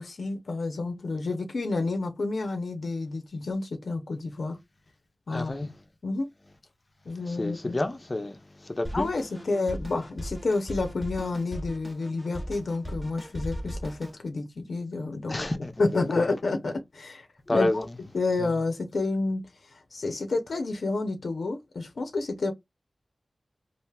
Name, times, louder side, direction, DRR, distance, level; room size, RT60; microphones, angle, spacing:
voice 1, 0.0-4.6 5.3-5.5 6.0-6.3 7.1-7.8 8.9-15.4 15.8-17.7 18.1-19.4 19.9-22.5, left 3 dB, 75° left, 0.6 m, -29 dB
voice 2, 5.3-5.7 7.3-9.1 15.3-16.3 17.5-17.8 18.4-18.5, left 2 dB, 30° left, 0.6 m, -30 dB
Drum kit, 8.8-14.2, equal, 15° right, 0.8 m, -38 dB
3.3 x 2.4 x 2.2 m
wide cardioid pair, 80°, 0 cm